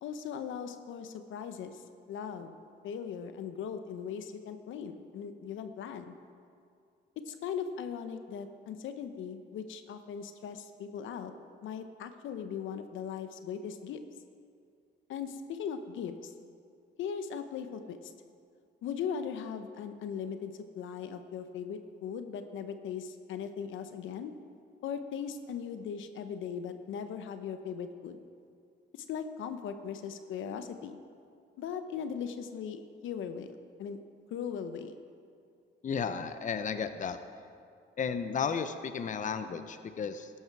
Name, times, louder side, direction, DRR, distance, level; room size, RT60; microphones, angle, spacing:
voice 1, 0.0-2.6 2.8-6.1 7.3-11.3 11.6-14.0 15.1-16.3 17.0-18.1 18.8-24.3 24.8-28.2 28.9-31.0 31.6-34.0 34.3-34.9, left 7 dB, 80° left, 9 dB, 0.8 m, -39 dB
voice 2, 35.8-37.2 38.0-40.3, left 6 dB, 40° left, 10 dB, 0.7 m, -33 dB
13.5 x 11.5 x 4.7 m, 2.4 s
cardioid pair, 90°, 20 cm